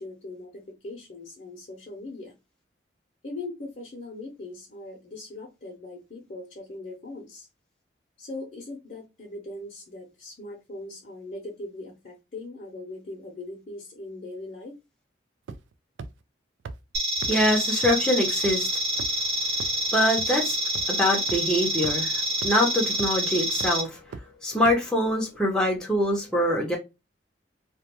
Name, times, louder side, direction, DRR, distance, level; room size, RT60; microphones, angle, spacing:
voice 1, 0.0-2.4 3.2-7.5 8.2-14.8, left 2 dB, 45° left, 0.7 m, -40 dB
sound 1, 15.5-15.7 16.0-16.1 16.7-16.8 17.2-17.3 17.8-17.9 18.4-18.5 19.0-19.2 19.6-19.7 20.2-20.3 20.8-20.9 21.3-21.4 21.8-21.9 22.4-22.5 23.0-23.2 23.6-23.7 24.1-24.2 24.7-24.8, right 4 dB, 80° right, 0.3 m, -36 dB
sound 2, 16.9-23.8, right 1 dB, 55° right, 0.8 m, -27 dB
voice 2, 17.2-18.8 19.4-24.0 24.4-26.8, left 1 dB, 5° left, 0.6 m, -24 dB
2.3 x 2.2 x 2.9 m
head